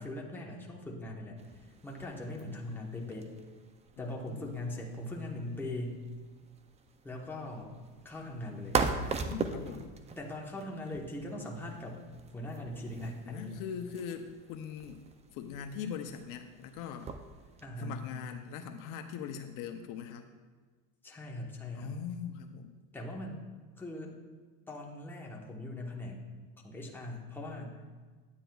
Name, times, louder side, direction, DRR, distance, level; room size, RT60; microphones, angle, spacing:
voice 1, 0.0-1.4 1.8-3.3 4.0-6.0 7.0-7.7 8.0-8.8 10.2-12.0 12.3-13.6 17.6-18.0 21.0-22.0 22.9-23.4 23.8-24.1 24.7-26.2 26.6-27.8, left 1 dB, 5° left, -2 dB, 1.0 m, -40 dB
sound 1, 1.4-17.7, right 5 dB, 20° right, 0.3 m, -41 dB
voice 2, 4.0-4.5 9.2-9.9 13.3-15.0 15.3-17.1 17.8-20.3 21.7-22.8, left 7 dB, 60° left, 6 dB, 0.6 m, -41 dB
9.7 x 9.0 x 2.3 m, 1.4 s
cardioid pair, 130°, 35 cm